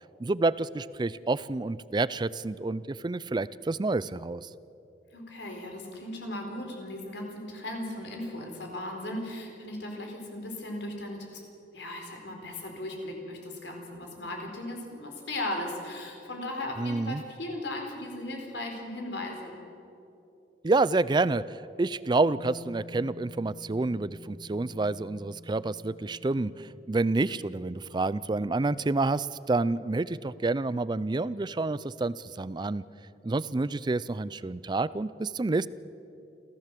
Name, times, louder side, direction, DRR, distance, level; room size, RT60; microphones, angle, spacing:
voice 1, 0.2-4.5 16.8-17.2 20.6-26.5 26.9-32.8 33.2-35.7, right 3 dB, 25° right, 18 dB, 0.4 m, -28 dB
voice 2, 5.1-11.4 11.7-19.6, left 1 dB, 70° left, 2 dB, 4.3 m, -37 dB
Bass guitar, 22.4-28.6, left 3 dB, 55° left, 2.0 m, -50 dB
27.5 x 15.5 x 7.6 m, 2.9 s
head